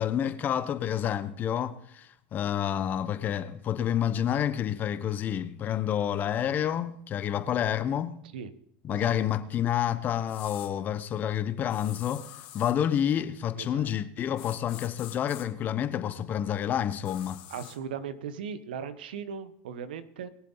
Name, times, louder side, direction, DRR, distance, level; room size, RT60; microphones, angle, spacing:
voice 1, 0.0-8.2 8.8-12.3 12.5-17.4, left 10 dB, 35° left, 1.1 m, -29 dB
sound 1, 10.3-10.7 11.7-12.8 14.4-15.5 17.0-17.8, left 14 dB, 65° left, 2.4 m, -46 dB
voice 2, 13.6-13.9 17.5-20.3, right 7 dB, 85° right, 1.1 m, -38 dB
22.0 x 7.4 x 4.0 m
supercardioid pair, 110°, 5 cm